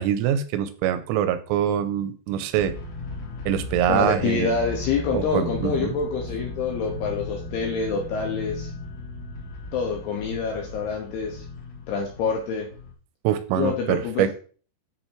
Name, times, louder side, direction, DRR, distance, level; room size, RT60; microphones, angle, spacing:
voice 1, 0.0-2.7 3.5-4.5 5.1-5.9 13.2-14.3, right 10 dB, 85° right, 11 dB, 3.4 m, -24 dB
sound 1, 2.6-12.9, left 3 dB, 45° left, 2.7 m, -36 dB
voice 2, 3.9-8.7 9.7-11.4 11.9-12.7 13.6-14.3, left 5 dB, 80° left, 1 dB, 2.4 m, -26 dB
9.7 x 3.9 x 4.5 m, 0.41 s
omnidirectional pair, 5.8 m